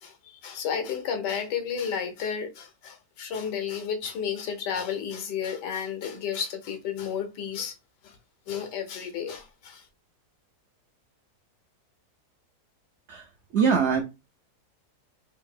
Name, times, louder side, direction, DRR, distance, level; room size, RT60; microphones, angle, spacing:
voice 1, 0.0-7.7 8.0-8.2 8.5-9.8, left 7 dB, 90° left, 1.5 m, -32 dB
voice 2, 13.1-14.0, right 6 dB, 85° right, 0.6 m, -24 dB
3.5 x 2.7 x 3.6 m
omnidirectional pair, 1.8 m